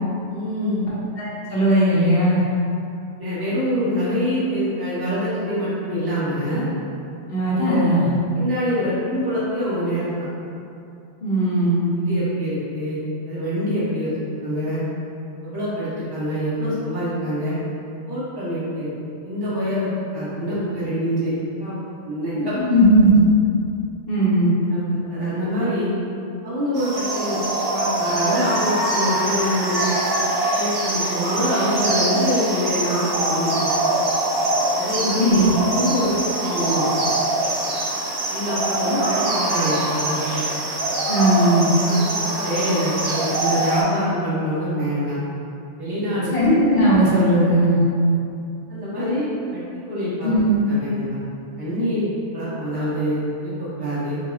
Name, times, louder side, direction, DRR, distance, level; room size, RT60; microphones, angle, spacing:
voice 1, 0.3-0.9 3.2-6.6 7.4-7.8 8.3-10.3 12.1-13.0 13.3-14.1 14.4-14.8 15.4-17.6 18.1-18.9 19.2-21.3 21.6-21.8 22.0-22.5 24.7-24.8 25.1-25.9 26.4-27.4 27.7-29.8 30.5-33.8 34.8-35.5 35.7-36.9 38.3-40.2 41.8-45.2 45.8-46.3 48.7-49.2 49.5-49.6 49.9-50.3 50.6-51.2 51.6-52.1 52.3-54.2, equal, 20° right, -12 dB, 1.0 m, -25 dB
voice 2, 1.2-2.4 7.3-8.1 11.2-11.9 22.5-23.2 24.1-24.5 35.2-35.5 41.1-41.7 46.3-47.8 50.2-50.6, right 1 dB, 55° left, -8 dB, 0.9 m, -17 dB
sound 1, 26.8-43.8, right 1 dB, 60° right, 0.7 m, -23 dB
4.0 x 2.8 x 2.4 m, 2.6 s
omnidirectional pair, 1.2 m